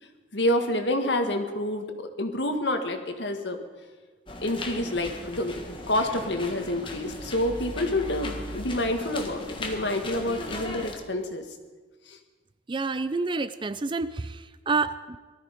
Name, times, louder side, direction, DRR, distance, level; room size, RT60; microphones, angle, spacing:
voice 1, 0.3-3.6 4.4-5.6 5.9-11.4 12.1-12.2, left 1 dB, 65° left, 6 dB, 1.6 m, -28 dB
sound 1, 4.3-10.9, left 2 dB, 25° left, 1.6 m, -37 dB
voice 2, 12.7-15.2, right 4 dB, 25° right, 14 dB, 0.4 m, -28 dB
18.5 x 13.0 x 5.2 m, 1.4 s
head